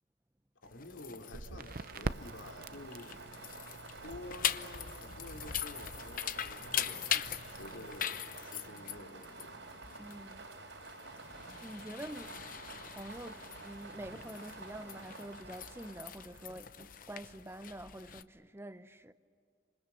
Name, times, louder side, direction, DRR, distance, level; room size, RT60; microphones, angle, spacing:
voice 1, 0.6-3.2 4.0-9.7, left 1 dB, 90° left, 2.9 m, -50 dB
sound 1, 0.6-18.2, left 9 dB, 45° left, 0.8 m, -42 dB
Crackle, 1.3-8.0, right 3 dB, 50° right, 0.6 m, -46 dB
sound 2, 1.4-16.8, right 3 dB, 80° right, 4.3 m, -50 dB
voice 2, 9.9-10.5 11.6-12.4 12.9-19.1, right 1 dB, 15° right, 0.8 m, -47 dB
28.5 x 26.5 x 7.0 m
head